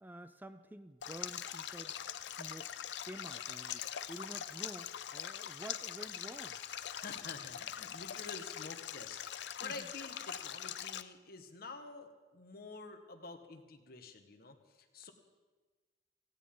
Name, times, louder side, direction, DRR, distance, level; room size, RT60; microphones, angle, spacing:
voice 1, 0.0-2.0 2.2-3.8 4.1-6.6 9.6-9.9, right 1 dB, 10° right, 10 dB, 0.4 m, -50 dB
Stream, 1.0-11.0, left 10 dB, 75° left, 0.5 m, -43 dB
voice 2, 6.9-15.1, left 3 dB, 60° left, 5 dB, 1.5 m, -49 dB
17.5 x 16.5 x 3.8 m, 1.3 s
head